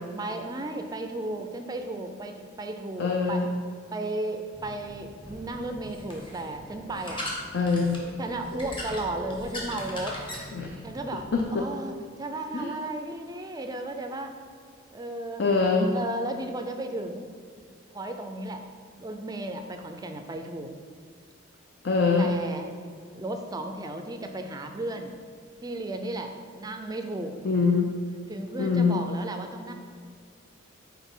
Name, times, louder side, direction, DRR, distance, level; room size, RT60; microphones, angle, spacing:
voice 1, 0.1-3.4 3.9-7.3 8.2-10.2 10.8-14.4 14.9-15.4 15.7-17.3 17.9-18.6 19.0-20.7 22.2-22.7 23.1-25.2 25.6-27.3 28.3-29.7, right 1 dB, 20° right, 5 dB, 0.4 m, -34 dB
voice 2, 3.0-3.5 7.5-8.0 10.5-10.8 11.3-11.7 12.5-12.7 15.4-15.9 21.8-22.4 27.4-27.9 28.6-29.0, left 4 dB, 55° left, 1 dB, 0.5 m, -24 dB
sound 1, 4.5-11.4, left 1 dB, 25° left, 1.1 m, -39 dB
6.1 x 4.5 x 5.4 m, 2.1 s
head